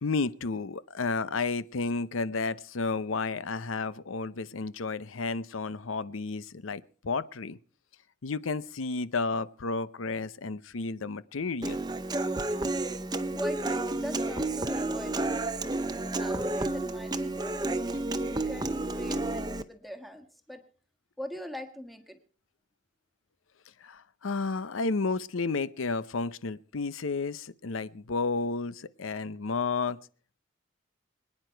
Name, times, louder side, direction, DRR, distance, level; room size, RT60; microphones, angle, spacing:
voice 1, 0.0-7.6 8.2-11.8 23.8-30.0, left 4 dB, 85° left, 0.7 m, -32 dB
Human voice / Acoustic guitar, 11.6-19.6, right 2 dB, 20° right, 0.7 m, -31 dB
voice 2, 13.3-15.3 16.2-17.7 18.2-20.6 21.2-22.2, equal, ahead, 1.4 m, -41 dB
26.0 x 9.8 x 4.5 m
head